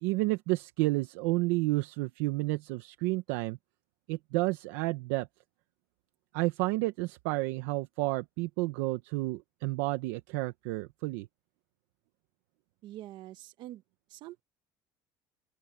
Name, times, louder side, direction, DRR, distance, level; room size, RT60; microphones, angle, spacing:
voice 1, 0.0-3.6 4.1-5.3 6.3-11.3, right 21 dB, 85° right, 1.2 m, -31 dB
voice 2, 12.8-13.8 14.1-14.4, right 14 dB, 60° right, 1.3 m, -45 dB
open air
supercardioid pair, 105°, 9 cm